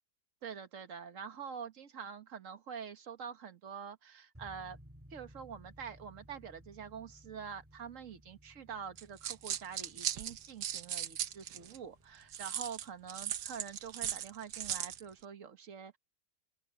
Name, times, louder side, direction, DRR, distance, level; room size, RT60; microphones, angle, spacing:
voice 1, 0.4-4.8 5.1-16.0, right 7 dB, 50° right, 1.7 m, -46 dB
sound 1, 4.3-15.2, equal, 10° right, 1.7 m, -60 dB
sound 2, 9.0-11.8 12.3-15.0, right 10 dB, 75° right, 1.4 m, -38 dB
open air
omnidirectional pair, 1.8 m